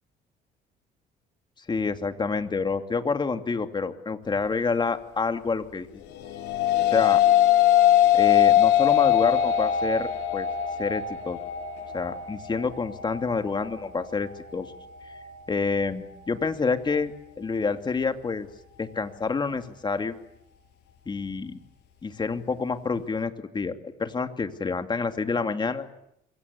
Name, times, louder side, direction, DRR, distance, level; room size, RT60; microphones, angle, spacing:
voice 1, 1.7-6.0 6.9-7.2 8.1-10.5 10.8-11.4 11.9-14.7 15.5-18.5 18.8-20.1 21.1-21.6 22.0-25.9, left 4 dB, 25° left, 7 dB, 2.6 m, -28 dB
sound 1, 6.1-15.3, left 11 dB, 90° left, 7.5 m, -22 dB
26.5 x 24.0 x 8.4 m, 0.80 s
cardioid pair, 110°, 17 cm